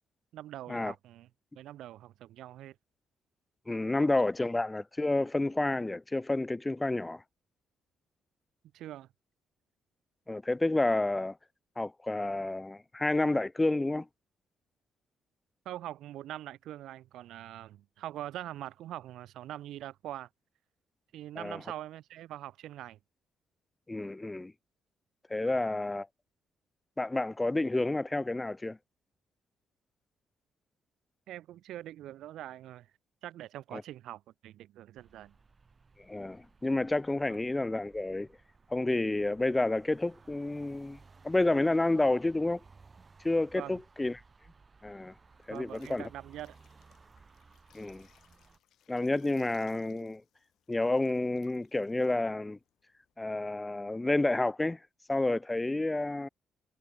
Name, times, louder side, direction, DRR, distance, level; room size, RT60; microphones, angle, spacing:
voice 1, 0.3-1.3 1.5-2.8 3.9-4.0 8.7-9.1 15.7-20.3 21.1-23.0 25.4-25.6 31.3-32.9 33.2-35.4 43.5-43.8 45.5-46.6, right 13 dB, 80° right, 0.6 m, -43 dB
voice 2, 3.7-7.2 10.3-11.4 11.8-14.1 21.4-21.6 23.9-24.5 25.3-26.1 27.0-28.8 33.7-33.8 36.1-38.3 38.7-41.0 41.2-42.6 43.2-44.2 44.8-45.1 45.5-46.1 47.7-48.1 48.9-50.2 50.7-52.6 53.2-54.8 55.1-56.3, left 2 dB, 15° left, 0.3 m, -30 dB
sound 1, 35.0-48.6, right 4 dB, 30° right, 1.4 m, -59 dB
sound 2, 45.1-53.1, left 11 dB, 75° left, 3.8 m, -68 dB
cardioid pair, 90°, 0 cm